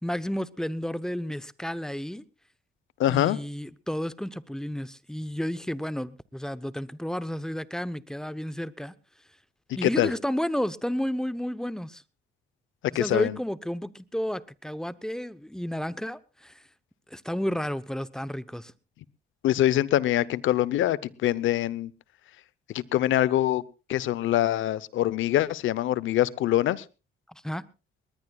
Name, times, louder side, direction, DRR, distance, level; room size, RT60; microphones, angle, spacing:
voice 1, 0.0-2.2 3.1-8.9 9.7-12.0 12.9-16.6 17.1-18.7 27.3-27.6, equal, 5° left, 0.9 m, -32 dB
voice 2, 3.0-3.4 9.8-10.1 12.9-13.4 19.4-21.9 22.7-23.6 23.9-26.8, left 13 dB, 80° left, 0.8 m, -24 dB
21.0 x 19.5 x 2.4 m
cardioid pair, 90°, 20 cm